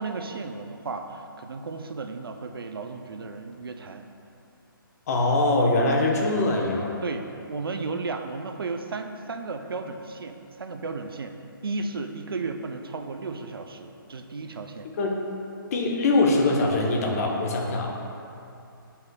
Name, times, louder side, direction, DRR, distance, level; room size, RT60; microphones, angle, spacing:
voice 1, 0.0-4.1 7.0-11.4 11.6-14.9, right 3 dB, 80° right, 6 dB, 0.5 m, -34 dB
voice 2, 5.1-6.9 15.0-15.2 15.7-17.9, left 2 dB, 40° left, 0 dB, 0.9 m, -22 dB
9.2 x 5.6 x 2.2 m, 2.6 s
hypercardioid pair, 145°, 12 cm